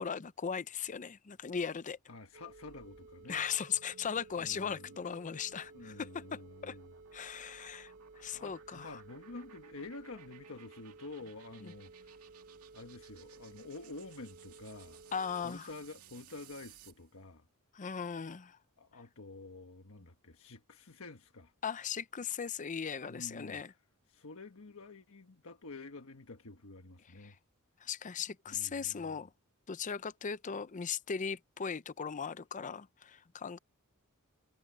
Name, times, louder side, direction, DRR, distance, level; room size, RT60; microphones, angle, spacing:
voice 1, 0.0-2.0 3.3-6.8 7.1-9.0 11.6-11.7 15.1-15.7 17.7-18.6 21.6-23.7 27.2-27.3 27.8-29.3 29.7-33.6, left 7 dB, 35° left, 0.5 m, -38 dB
voice 2, 2.1-3.4 4.4-4.9 5.7-6.9 8.3-12.2 12.7-15.0 15.4-17.4 18.8-21.5 23.1-23.6 24.1-27.4 28.5-29.2, left 3 dB, 65° left, 1.4 m, -49 dB
sound 1, 2.3-15.5, right 3 dB, 55° right, 0.8 m, -56 dB
sound 2, 2.3-17.1, right 7 dB, 85° right, 2.3 m, -60 dB
head